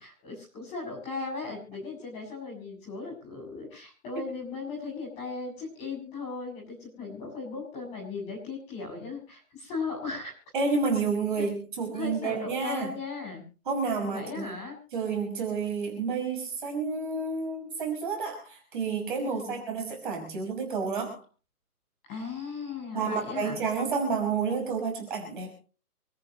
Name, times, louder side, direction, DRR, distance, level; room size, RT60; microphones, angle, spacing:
voice 1, 0.0-10.3 11.9-13.4 13.8-14.8 19.2-19.6 22.1-23.6, left 4 dB, 15° left, -4 dB, 7.6 m, -37 dB
voice 2, 10.5-12.9 13.7-14.5 14.9-21.2 22.9-25.6, right 5 dB, 35° right, 1 dB, 5.9 m, -30 dB
27.0 x 14.0 x 3.1 m, 0.37 s
hypercardioid pair, 170°, 46 cm